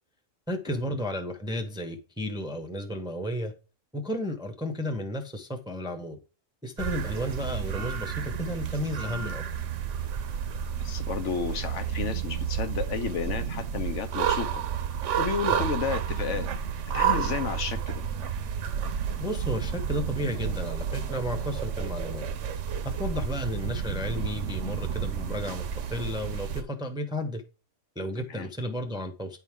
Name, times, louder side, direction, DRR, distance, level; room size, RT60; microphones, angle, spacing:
voice 1, 0.5-3.5 3.9-6.2 6.6-9.5 15.5-15.7 19.2-22.3 22.8-27.4 28.0-29.4, equal, 5° right, 0.7 m, -33 dB
sound 1, 6.8-26.6, right 8 dB, 65° right, 1.0 m, -31 dB
voice 2, 10.8-14.6 15.2-16.5 16.9-18.0 28.3-28.5, left 6 dB, 65° left, 1.1 m, -32 dB
9.6 x 4.6 x 3.5 m
omnidirectional pair, 1.4 m